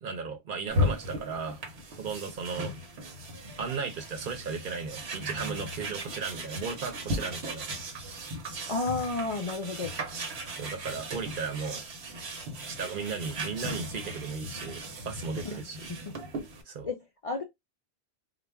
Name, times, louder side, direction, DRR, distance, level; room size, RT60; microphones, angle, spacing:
voice 1, 0.0-1.6 2.0-2.7 3.6-7.7 10.6-11.8 12.7-15.9 16.7-16.9, right 5 dB, 55° right, 0.8 m, -35 dB
sound 1, 0.7-16.6, equal, 80° right, 1.0 m, -36 dB
voice 2, 8.7-9.9 15.4-15.6 15.9-16.0 16.8-17.4, left 3 dB, 55° left, 0.4 m, -32 dB
2.4 x 2.0 x 3.3 m
omnidirectional pair, 1.1 m